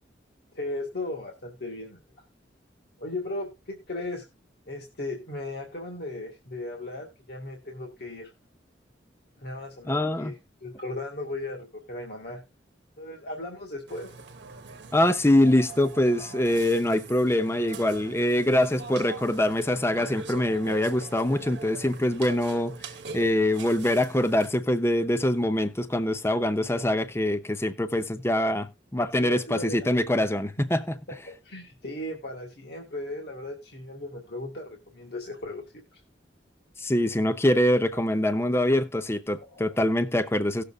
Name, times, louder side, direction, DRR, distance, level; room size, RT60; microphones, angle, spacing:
voice 1, 0.5-2.0 3.0-4.3 4.7-8.3 9.4-12.4 13.0-14.1 29.2-29.9 30.2-30.3 31.2-35.6 35.9-36.0 37.9-38.0 39.4-39.8, left 2 dB, 60° left, 1.9 m, -37 dB
voice 2, 9.9-10.3 14.9-22.7 23.1-28.7 28.9-30.8 36.8-40.6, left 1 dB, 15° left, 0.7 m, -24 dB
Burping eructation, 13.9-24.5, right 3 dB, 65° right, 1.1 m, -42 dB
17.5 x 6.7 x 2.4 m
head